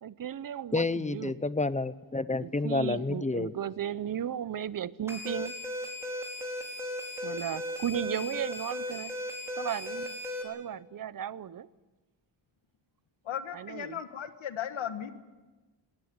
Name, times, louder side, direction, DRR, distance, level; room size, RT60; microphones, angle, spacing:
voice 1, 0.0-1.3 2.4-5.5 7.2-9.1 9.6-10.2 10.4-11.7 13.5-14.0, right 9 dB, 45° right, 0.7 m, -35 dB
voice 2, 0.7-3.5, left 3 dB, 15° left, 0.7 m, -29 dB
sound 1, 5.1-10.4, left 1 dB, 5° right, 5.0 m, -36 dB
voice 3, 13.2-15.1, left 9 dB, 85° left, 1.5 m, -36 dB
20.5 x 18.5 x 9.6 m
wide cardioid pair, 150°, 46 cm